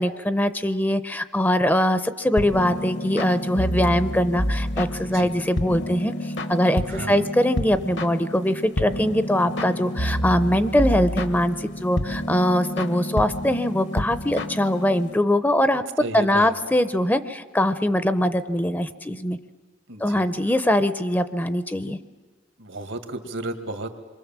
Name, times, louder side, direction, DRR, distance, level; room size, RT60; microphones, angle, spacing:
voice 1, 0.0-15.8 16.1-19.4 20.0-22.0, left 1 dB, 10° left, 12 dB, 0.6 m, -22 dB
sound 1, 2.4-15.2, equal, 65° left, 1.3 m, -29 dB
voice 2, 5.0-5.3 6.9-7.3 16.0-16.5 19.9-20.3 22.6-24.0, right 2 dB, 85° right, 7 dB, 2.1 m, -33 dB
27.0 x 23.5 x 7.4 m, 1.4 s
head